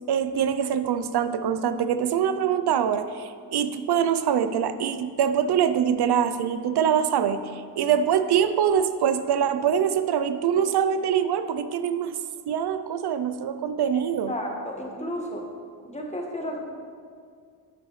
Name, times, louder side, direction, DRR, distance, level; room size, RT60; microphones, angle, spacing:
voice 1, 0.1-12.2 12.5-14.3, right 8 dB, 80° right, 10 dB, 0.5 m, -24 dB
voice 2, 14.3-15.5 15.8-16.6, equal, 15° left, 0 dB, 1.4 m, -32 dB
11.0 x 8.8 x 3.1 m, 2.1 s
wide cardioid pair, 110°, 39 cm